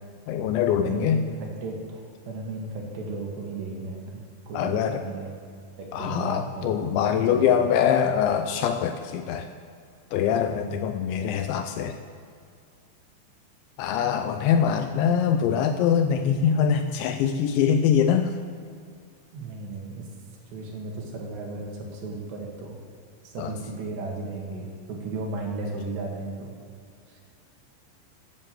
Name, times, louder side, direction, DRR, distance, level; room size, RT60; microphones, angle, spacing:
voice 1, 0.3-1.3 4.5-5.0 5.9-9.5 10.1-12.0 13.8-18.4 23.4-23.5, left 8 dB, 80° left, 7 dB, 2.8 m, -23 dB
voice 2, 0.8-5.3 5.8-7.7 10.5-10.8 19.3-20.1 20.5-22.8 23.2-26.6 27.1-27.2, right 3 dB, 65° right, 0 dB, 4.0 m, -35 dB
13.0 x 10.0 x 7.9 m, 2.2 s
omnidirectional pair, 5.6 m